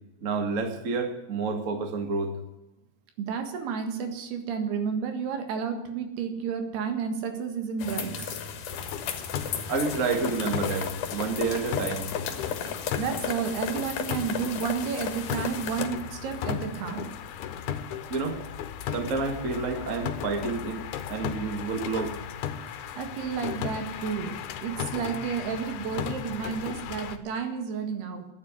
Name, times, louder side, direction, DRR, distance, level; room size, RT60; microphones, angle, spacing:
voice 1, 0.2-2.3 9.7-12.1 18.1-18.4 18.9-22.2, right 4 dB, 45° right, 5 dB, 0.9 m, -29 dB
voice 2, 3.2-8.3 13.0-17.1 23.0-24.4 24.6-28.3, right 6 dB, 80° right, 7 dB, 3.7 m, -31 dB
sound 1, 7.8-15.9, left 7 dB, 60° left, 2.6 m, -34 dB
sound 2, 8.7-27.2, left 9 dB, 80° left, 2.9 m, -36 dB
13.0 x 9.9 x 9.5 m, 0.98 s
omnidirectional pair, 4.6 m